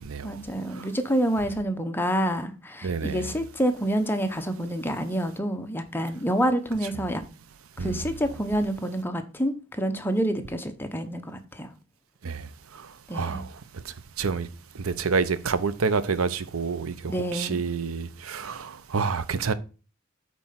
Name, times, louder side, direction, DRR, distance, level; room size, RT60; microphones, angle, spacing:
voice 1, 0.2-7.2 7.8-11.7 13.1-13.5 17.1-17.6, equal, 10° left, 0.9 m, -28 dB
voice 2, 2.8-3.3 7.8-8.0 12.2-12.4 13.1-13.4 14.2-14.5 14.8-19.5, right 5 dB, 85° right, 0.7 m, -28 dB
8.9 x 4.4 x 5.7 m
head